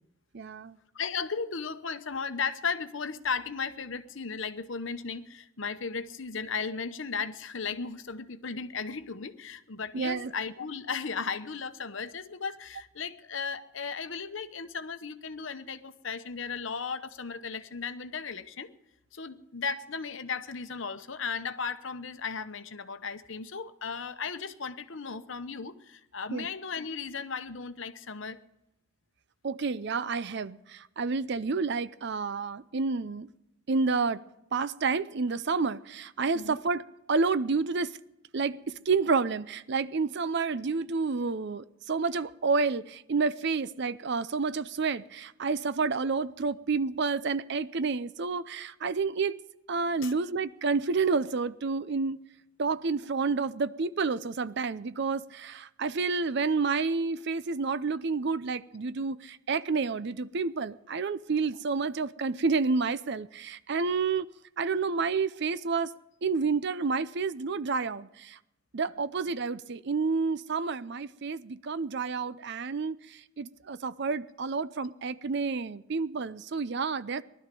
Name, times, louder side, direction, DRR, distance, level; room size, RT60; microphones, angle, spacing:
voice 1, 0.3-0.8 9.9-10.3 26.3-26.5 29.4-33.3 33.7-34.2 34.5-36.8 37.1-37.9 38.3-49.4 49.7-52.2 52.6-64.3 64.6-65.9 66.2-68.4 68.7-73.0 73.4-77.2, right 4 dB, 55° right, 0.5 m, -29 dB
voice 2, 0.9-18.7 19.1-28.4 36.3-36.6 50.0-50.1, left 5 dB, 65° left, 0.9 m, -36 dB
19.5 x 12.0 x 5.3 m
head